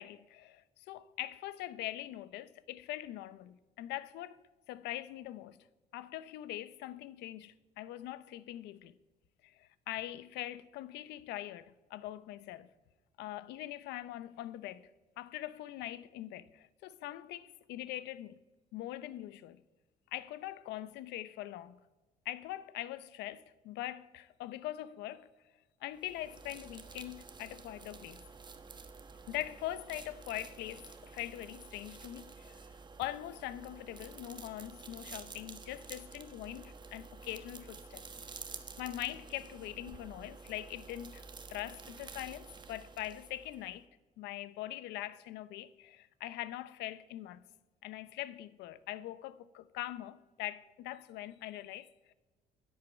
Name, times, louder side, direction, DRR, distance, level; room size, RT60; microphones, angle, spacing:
voice 1, 0.0-5.6 5.9-9.0 9.4-12.7 13.2-14.9 15.2-18.4 18.7-19.6 20.1-21.8 22.2-25.3 25.8-28.2 29.3-38.0 38.8-41.2 41.5-43.9 44.2-47.5 47.8-52.1, left 14 dB, 85° left, 0.7 m, -42 dB
sound 1, 25.9-43.8, right 4 dB, 25° right, 1.3 m, -50 dB
10.5 x 10.5 x 8.9 m
cardioid pair, 110°, 17 cm